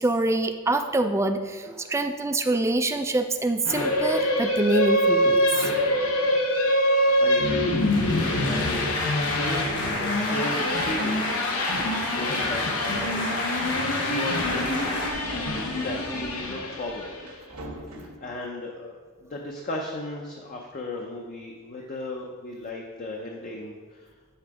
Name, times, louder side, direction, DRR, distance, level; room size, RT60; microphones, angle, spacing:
voice 1, 0.0-5.7, right 2 dB, 15° right, 7 dB, 0.3 m, -25 dB
sound 1, 3.7-17.3, left 1 dB, 75° left, 0.9 m, -25 dB
voice 2, 6.9-8.0 8.4-8.9 9.4-12.8 13.9-17.3 18.0-24.1, left 1 dB, 40° left, 0 dB, 0.6 m, -36 dB
sound 2, 7.7-15.1, left 2 dB, 55° left, 1.3 m, -31 dB
sound 3, 14.3-18.3, right 1 dB, 80° right, 1.1 m, -40 dB
8.1 x 3.8 x 4.7 m, 1.5 s
head